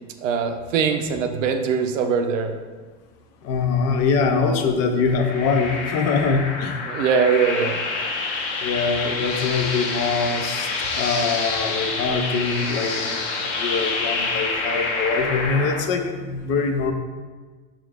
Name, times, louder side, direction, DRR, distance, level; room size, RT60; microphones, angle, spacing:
voice 1, 0.2-2.5 6.9-7.8, right 6 dB, 85° right, 6 dB, 0.6 m, -22 dB
voice 2, 3.4-6.9 8.6-10.7 10.9-16.9, left 4 dB, 40° left, 5 dB, 0.5 m, -23 dB
sound 1, 5.0-15.8, left 3 dB, 65° left, 0.9 m, -27 dB
4.9 x 2.4 x 3.3 m, 1.4 s
supercardioid pair, 110°, 37 cm